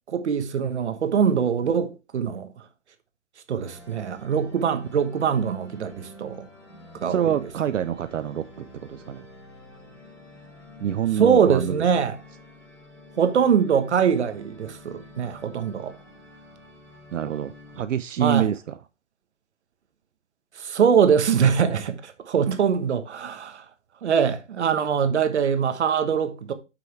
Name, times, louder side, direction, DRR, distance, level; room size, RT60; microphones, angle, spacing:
voice 1, 0.1-2.5 3.5-6.5 7.0-7.3 11.2-12.2 13.2-16.0 18.2-18.5 20.5-23.6 24.0-26.5, right 7 dB, 65° right, 1.2 m, -23 dB
sound 1, 3.6-17.8, left 2 dB, 5° left, 3.3 m, -48 dB
voice 2, 7.1-9.3 10.8-11.8 17.1-18.8, right 9 dB, 80° right, 0.6 m, -26 dB
8.0 x 6.0 x 3.3 m
hypercardioid pair, 145°, 37 cm